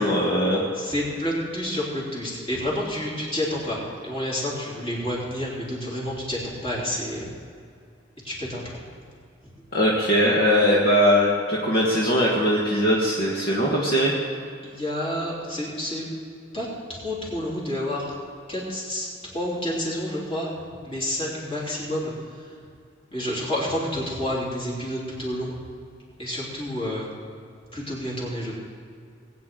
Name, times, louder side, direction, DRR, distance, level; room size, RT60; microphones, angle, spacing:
voice 1, 0.0-0.6 9.7-14.1, equal, 50° left, -4 dB, 1.6 m, -20 dB
voice 2, 0.7-7.3 8.2-8.8 14.6-16.1 16.5-18.1 18.5-20.5 20.8-22.1 23.1-25.6 26.2-27.1 27.7-28.5, left 1 dB, 30° left, -6 dB, 3.8 m, -29 dB
20.5 x 9.5 x 3.9 m, 2.3 s
head